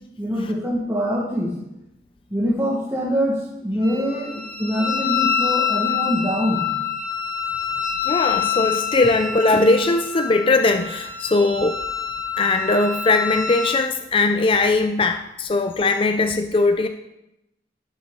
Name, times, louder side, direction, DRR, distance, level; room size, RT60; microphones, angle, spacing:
voice 1, 0.2-1.5 2.3-6.7, equal, 15° right, -6 dB, 1.4 m, -24 dB
Wind instrument woodwind instrument, 3.8-13.8, left 7 dB, 65° left, 2.4 m, -26 dB
voice 2, 8.0-11.8 12.4-16.9, left 3 dB, 30° left, 7 dB, 0.4 m, -20 dB
11.0 x 7.6 x 3.6 m, 0.88 s
head